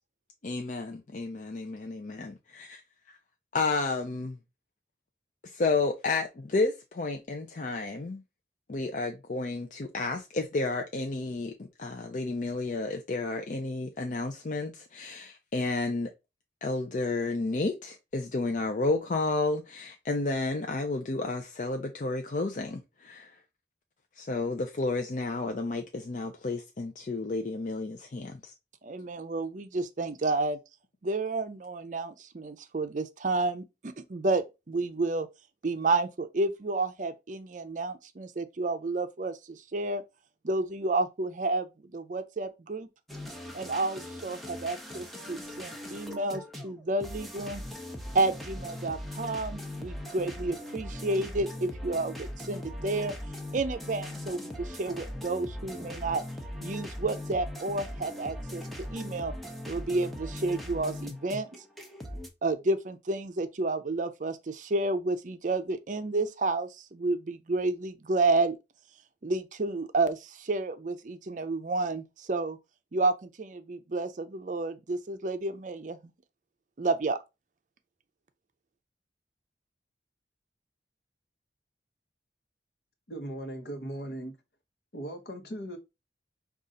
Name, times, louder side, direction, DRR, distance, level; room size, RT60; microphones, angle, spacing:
voice 1, 0.4-2.8 3.1-3.2 3.5-4.4 5.4-8.2 8.7-11.5 11.8-16.1 16.6-23.4 24.2-28.5, left 3 dB, 45° left, 0.5 m, -31 dB
voice 2, 28.8-30.6 31.0-35.3 35.6-40.0 40.4-42.9 43.5-47.6 48.1-53.1 53.5-56.2 56.6-58.6 58.9-59.3 59.7-61.5 62.4-68.6 69.2-72.6 72.9-76.0 76.8-77.2, right 2 dB, 45° right, 0.5 m, -30 dB
sound 1, 43.1-62.3, left 1 dB, ahead, 0.7 m, -40 dB
voice 3, 83.1-84.4 84.9-85.8, right 1 dB, 60° left, 1.0 m, -38 dB
5.3 x 2.4 x 3.7 m
head